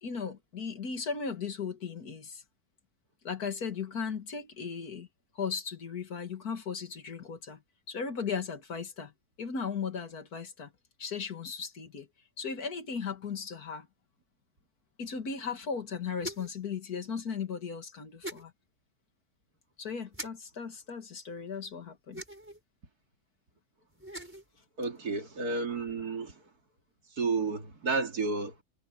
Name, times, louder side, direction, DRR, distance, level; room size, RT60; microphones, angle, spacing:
voice 1, 0.0-2.4 3.2-5.1 5.4-7.6 7.9-9.1 9.4-10.7 11.0-12.1 12.4-13.9 15.0-18.5 19.8-22.2, left 6 dB, 85° left, 2.5 m, -36 dB
sound 1, 16.2-16.6 18.2-18.4 20.1-20.3 22.1-22.6 23.9-24.5, right 1 dB, 10° right, 4.5 m, -41 dB
voice 2, 24.8-26.4 27.2-28.6, right 4 dB, 85° right, 3.0 m, -31 dB
omnidirectional pair, 1.6 m